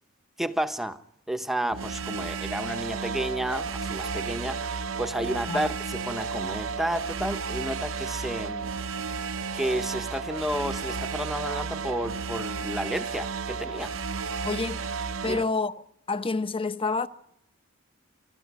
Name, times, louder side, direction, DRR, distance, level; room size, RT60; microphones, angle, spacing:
voice 1, 0.4-1.0 1.3-8.7 9.5-13.9 15.2-15.4, right 1 dB, ahead, 0.8 m, -31 dB
sound 1, 1.7-15.4, right 5 dB, 85° right, 0.7 m, -33 dB
voice 2, 14.4-14.8 15.2-15.7 16.1-17.1, left 3 dB, 25° left, 0.8 m, -28 dB
26.5 x 13.5 x 9.4 m
head